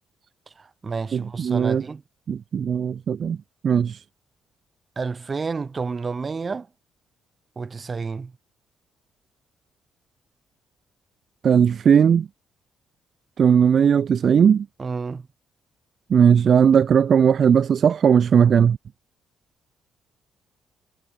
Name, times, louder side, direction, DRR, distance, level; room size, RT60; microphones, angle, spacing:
voice 1, 0.6-2.0 5.0-6.7 7.6-8.3 14.8-15.3, right 4 dB, 35° right, 1.0 m, -30 dB
voice 2, 1.1-1.8 2.3-3.4 3.6-4.0 11.4-12.3 13.4-14.7 16.1-18.8, right 7 dB, 55° right, 0.3 m, -18 dB
cardioid pair, 90°, 0 cm